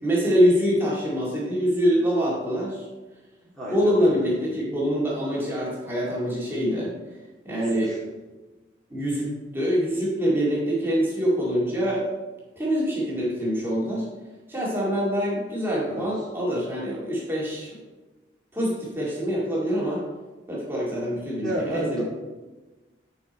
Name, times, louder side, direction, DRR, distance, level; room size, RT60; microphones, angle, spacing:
voice 1, 0.0-2.9 3.7-6.9 7.4-7.9 8.9-12.1 12.6-14.1 14.5-17.7 18.5-20.1 20.5-22.0, equal, 10° right, -6 dB, 2.2 m, -25 dB
voice 2, 3.6-4.3 7.5-8.0 15.9-16.1 21.4-22.0, right 1 dB, 5° left, -7 dB, 2.1 m, -32 dB
10.5 x 5.9 x 4.3 m, 1.2 s
head